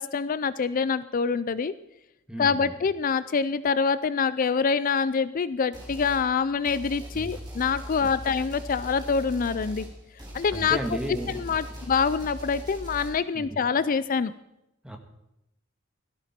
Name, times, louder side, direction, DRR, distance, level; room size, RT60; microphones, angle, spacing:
voice 1, 0.0-1.7 2.4-9.8 10.3-10.8 11.3-14.3, left 5 dB, 40° left, 15 dB, 0.4 m, -25 dB
voice 2, 2.3-2.8 7.1-7.4 8.0-8.1 10.5-11.4 13.3-13.6 14.8-15.0, right 1 dB, 5° right, 3 dB, 1.7 m, -34 dB
sound 1, 5.7-6.3 6.6-13.1, equal, 20° right, 4.5 m, -40 dB
17.0 x 14.0 x 4.3 m, 0.87 s
head